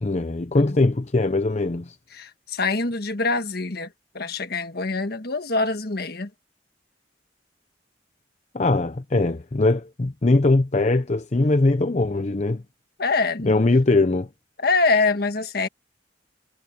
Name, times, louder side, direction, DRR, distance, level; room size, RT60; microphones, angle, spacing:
voice 1, 0.0-2.0 8.5-12.6 13.5-14.3, left 2 dB, 40° left, 0.7 m, -21 dB
voice 2, 2.1-6.3 13.0-13.6 14.6-15.7, left 3 dB, 55° left, 1.5 m, -24 dB
head